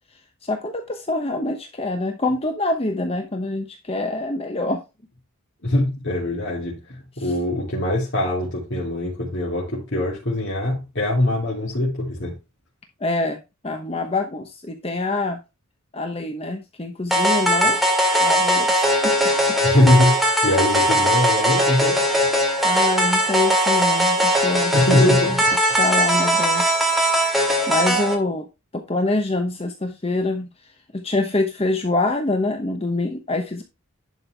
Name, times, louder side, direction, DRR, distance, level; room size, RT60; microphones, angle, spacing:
voice 1, 0.4-4.8 7.2-7.3 13.0-15.4 15.9-17.8 18.2-19.2 19.5-19.6 22.6-25.4 25.8-26.8 27.4-28.5 28.7-30.5 30.9-33.6, left 2 dB, 25° left, 0.9 m, -25 dB
voice 2, 5.6-12.4 19.6-22.0 24.7-25.4, left 1 dB, 55° left, 3.2 m, -22 dB
sound 1, 17.1-28.1, equal, ahead, 2.1 m, -19 dB
11.0 x 5.4 x 3.4 m
head